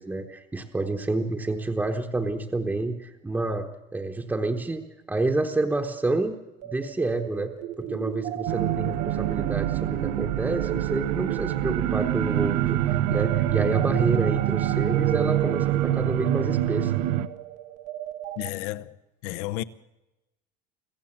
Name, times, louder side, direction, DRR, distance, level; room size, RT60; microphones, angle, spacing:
voice 1, 0.0-4.8 5.1-6.4 6.7-16.9, right 2 dB, 5° right, 1.1 m, -29 dB
sound 1, 6.6-18.5, right 11 dB, 35° right, 0.9 m, -34 dB
sound 2, 8.5-17.3, right 13 dB, 80° right, 1.1 m, -26 dB
voice 2, 18.4-18.9 19.2-19.6, left 15 dB, 65° left, 1.0 m, -31 dB
26.0 x 15.5 x 7.4 m
cardioid pair, 155°, 21 cm